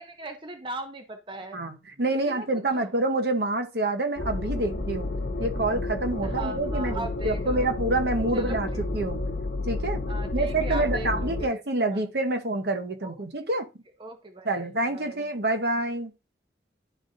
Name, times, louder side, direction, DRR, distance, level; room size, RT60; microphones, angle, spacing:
voice 1, 0.0-1.6 2.1-2.5 2.7-2.9 4.6-4.7 6.2-7.7 8.3-8.8 10.1-11.5 11.9-12.0 13.0-13.1 14.0-14.6 14.9-15.3, right 2 dB, 30° right, 0.7 m, -39 dB
voice 2, 1.5-5.1 5.4-8.7 8.9-9.2 9.6-10.0 10.3-13.7 14.4-16.1, right 2 dB, 65° right, 1.0 m, -27 dB
sound 1, 4.2-11.4, left 2 dB, 65° left, 0.8 m, -30 dB
11.0 x 3.8 x 2.6 m
head